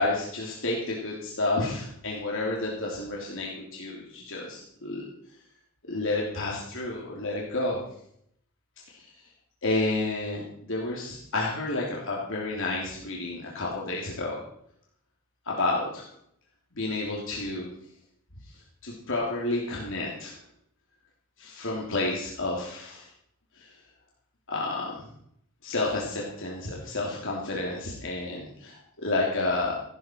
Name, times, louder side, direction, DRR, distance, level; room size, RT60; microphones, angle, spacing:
voice 1, 0.0-5.0 5.9-7.8 8.9-9.1 9.6-14.4 15.4-16.1 16.7-17.7 18.8-20.3 21.4-23.1 23.5-23.7 24.5-25.0 25.6-29.8, left 2 dB, 60° left, -3 dB, 3.1 m, -30 dB
16.0 x 13.5 x 4.6 m, 0.70 s
head